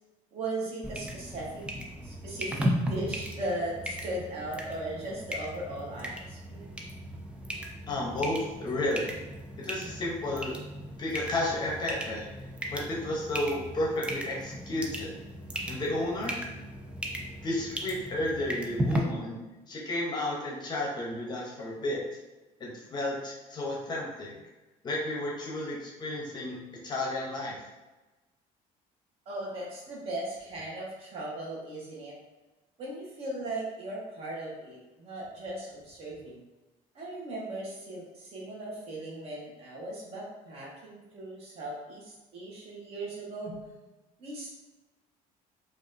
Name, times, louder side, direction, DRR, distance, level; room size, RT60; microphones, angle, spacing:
voice 1, 0.3-1.6 2.0-6.7 29.3-32.2 32.8-36.4 36.9-43.6 44.2-44.5, right 1 dB, 45° right, -3 dB, 1.1 m, -38 dB
sound 1, 0.8-19.0, equal, 10° right, 0.3 m, -36 dB
voice 2, 7.9-9.1 9.6-10.5 11.0-12.3 12.7-15.1 15.7-16.4 17.4-19.4 19.7-22.0 22.6-24.3 24.8-27.6, left 1 dB, 30° left, -2 dB, 0.7 m, -32 dB
4.9 x 2.5 x 2.5 m, 1.1 s
cardioid pair, 165°, 14 cm